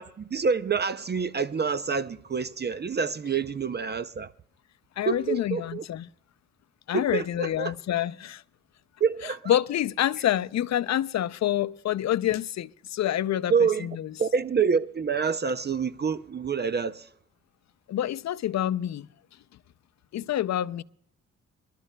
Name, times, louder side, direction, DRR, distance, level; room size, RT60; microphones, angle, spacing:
voice 1, 0.0-4.3 5.1-5.8 6.9-7.7 9.0-9.4 13.5-13.9 14.2-17.1, right 5 dB, 35° right, 0.5 m, -27 dB
voice 2, 5.0-6.1 6.9-8.4 9.5-14.1 17.9-19.1 20.1-20.8, left 11 dB, 65° left, 0.5 m, -27 dB
27.0 x 12.0 x 2.2 m
cardioid pair, 80°, 30 cm